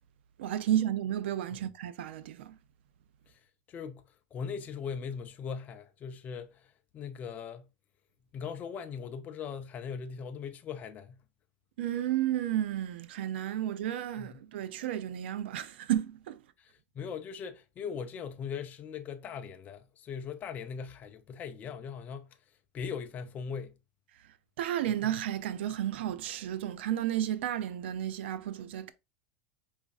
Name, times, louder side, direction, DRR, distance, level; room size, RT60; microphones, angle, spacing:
voice 1, 0.4-2.5 11.8-16.4 24.6-28.9, right 11 dB, 90° right, 0.4 m, -32 dB
voice 2, 3.7-4.0 4.3-7.7 8.3-11.2 14.2-14.4 16.6-22.4 22.7-23.7, left 6 dB, 30° left, 0.4 m, -40 dB
4.9 x 2.4 x 2.3 m
supercardioid pair, 135°, 6 cm